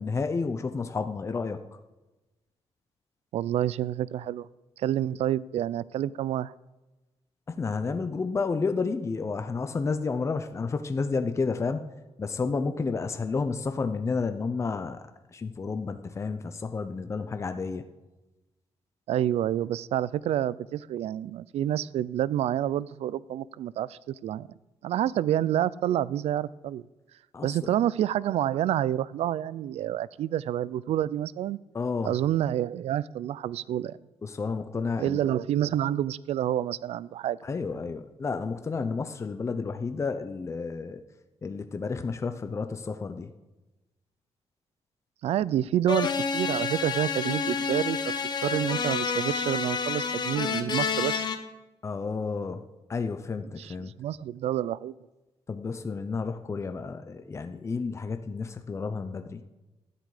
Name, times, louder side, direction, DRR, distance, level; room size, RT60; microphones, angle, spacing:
voice 1, 0.0-1.6 7.5-11.8 12.2-15.0 15.3-17.8 27.3-27.5 31.7-32.1 34.2-35.2 37.4-41.0 41.4-43.3 51.8-52.6 52.9-53.9 55.5-59.4, left 4 dB, 25° left, 8 dB, 0.7 m, -31 dB
voice 2, 3.3-4.5 4.8-6.5 19.1-24.5 24.8-26.8 27.4-31.6 32.0-34.0 35.0-37.4 37.7-37.8 45.2-48.0 48.4-51.3 53.6-54.9, right 11 dB, 80° right, 20 dB, 0.4 m, -28 dB
sound 1, 45.9-51.4, left 5 dB, 40° left, 1.1 m, -29 dB
13.0 x 10.0 x 5.0 m, 1.1 s
cardioid pair, 130°, 11 cm